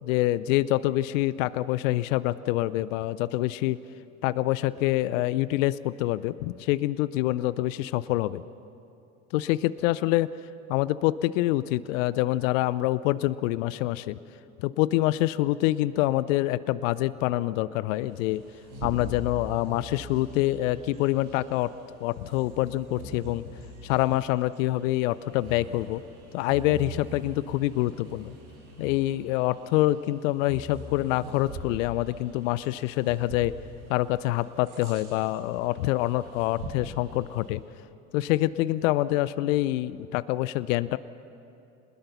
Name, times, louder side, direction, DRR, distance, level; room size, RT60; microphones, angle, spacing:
voice 1, 0.0-3.8 4.2-8.4 9.3-10.3 10.7-14.2 14.6-18.4 18.8-21.7 22.0-23.4 23.8-26.0 26.3-28.3 28.8-33.6 33.9-37.6 38.1-41.0, left 16 dB, 65° left, 17 dB, 0.7 m, -26 dB
Bird vocalization bird call bird song, 18.1-37.5, right 1 dB, 75° right, 5.8 m, -43 dB
27.0 x 20.5 x 5.7 m, 2.7 s
hypercardioid pair, 75°, 42 cm